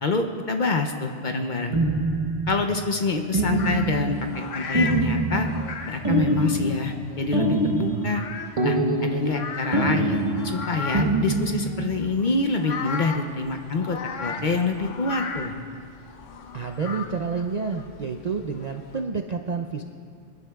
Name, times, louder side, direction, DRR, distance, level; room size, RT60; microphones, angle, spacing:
voice 1, 0.0-1.8 2.5-5.5 5.9-8.2 8.6-8.8 9.0-15.5, left 3 dB, 50° left, 5 dB, 0.7 m, -26 dB
sound 1, 1.7-2.6 3.3-4.3 4.7-5.7 6.0-6.9 7.3-8.1 8.6-9.4 9.7-10.6 10.9-11.9, right 2 dB, 30° right, 0.9 m, -24 dB
sound 2, 3.5-19.0, left 5 dB, 85° left, 1.1 m, -37 dB
voice 2, 16.5-19.8, right 5 dB, 55° right, 4 dB, 0.5 m, -29 dB
26.5 x 10.5 x 2.3 m, 2.4 s
omnidirectional pair, 1.2 m